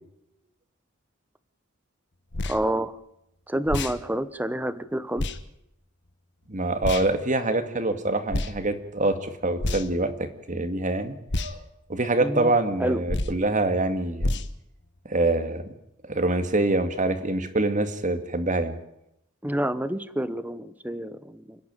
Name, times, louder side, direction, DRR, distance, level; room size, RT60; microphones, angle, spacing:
sound 1, 2.3-2.6 3.7-4.0 5.2-5.4 6.8-7.1 8.3-8.5 9.6-10.0 11.3-11.5 13.1-13.4 14.2-14.5, left 2 dB, 60° left, 1.4 m, -28 dB
voice 1, 2.5-2.9 3.5-5.2 12.2-12.5 12.8-13.0 19.4-21.6, right 1 dB, 10° right, 14 dB, 1.1 m, -28 dB
voice 2, 6.5-11.6 11.9-14.4 15.0-15.7 16.0-18.8, right 2 dB, 40° right, 9 dB, 2.1 m, -25 dB
29.5 x 10.5 x 9.0 m, 0.83 s
head